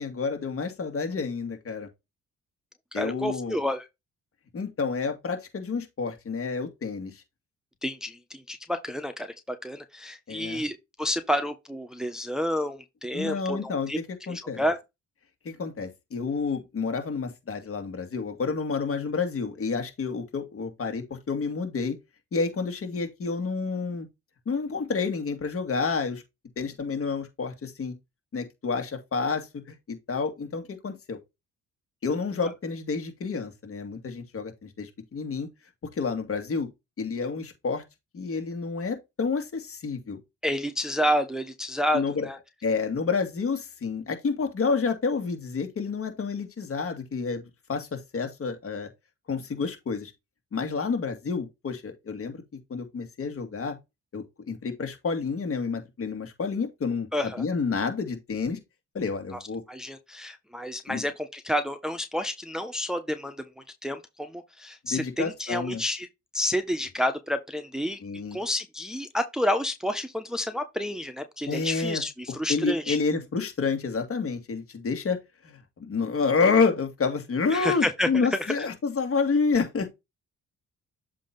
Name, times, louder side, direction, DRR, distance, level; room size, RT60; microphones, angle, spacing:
voice 1, 0.0-1.9 2.9-3.6 4.5-7.2 10.3-10.6 13.1-14.6 15.4-22.0 22.3-24.1 24.5-26.2 26.6-27.9 28.3-31.2 32.0-35.5 35.9-36.7 37.0-37.8 38.1-40.2 41.9-42.3 42.6-47.4 47.7-48.9 49.3-50.1 50.5-52.4 52.7-53.8 54.1-58.6 58.9-59.6 60.9-61.1 64.9-65.8 68.0-68.4 71.5-72.0 72.5-75.2 75.4-79.9, left 4 dB, 45° left, 2.5 m, -29 dB
voice 2, 2.9-3.9 7.8-14.0 14.3-14.8 40.4-42.4 57.1-57.4 59.3-59.4 59.7-66.1 66.3-68.0 68.3-73.0 77.5-78.7, left 1 dB, ahead, 1.0 m, -30 dB
7.5 x 3.0 x 5.3 m
cardioid pair, 90°, 30 cm